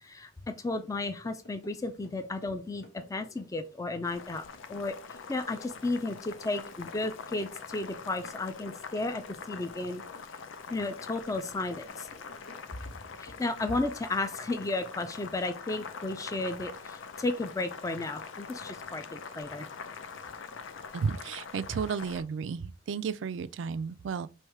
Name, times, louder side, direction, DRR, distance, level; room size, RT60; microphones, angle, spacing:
voice 1, 0.0-4.9 5.3-10.0 10.7-12.1 13.2-19.7, left 2 dB, 20° left, 0.4 m, -33 dB
sound 1, 1.2-3.7 4.0-6.8 7.0-8.0 8.2-9.9 10.1-11.1 11.3-13.0 13.3-13.5, left 1 dB, 60° left, 1.2 m, -53 dB
Boiling, 4.0-22.2, left 5 dB, 90° left, 0.5 m, -44 dB
voice 2, 20.9-24.3, right 6 dB, 70° right, 0.4 m, -33 dB
3.3 x 3.1 x 4.6 m
head